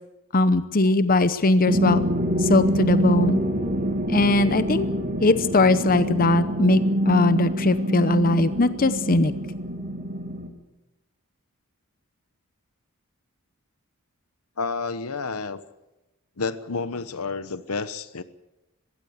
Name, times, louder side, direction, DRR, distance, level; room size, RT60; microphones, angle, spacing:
voice 1, 0.3-2.0 2.4-3.4 4.1-4.9 5.2-9.3, left 2 dB, 40° left, 12 dB, 0.8 m, -20 dB
sound 1, 1.7-10.5, equal, 40° right, 2.6 m, -25 dB
voice 2, 14.6-15.6 16.4-18.2, left 4 dB, 85° left, 13 dB, 1.1 m, -30 dB
21.0 x 16.0 x 8.1 m, 0.98 s
head